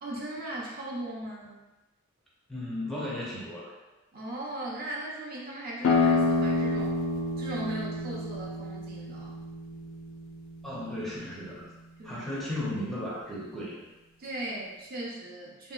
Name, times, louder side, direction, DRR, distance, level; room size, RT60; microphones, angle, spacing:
voice 1, 0.0-1.7 4.1-7.0 7.4-9.4 12.0-12.3 14.2-15.7, right 1 dB, 45° right, -4 dB, 0.5 m, -38 dB
voice 2, 2.5-3.8 10.6-11.6 12.0-13.8, left 1 dB, ahead, -8 dB, 0.5 m, -35 dB
sound 1, 5.8-11.2, left 3 dB, 85° left, 0.4 m, -29 dB
2.8 x 2.6 x 2.3 m, 1.1 s
head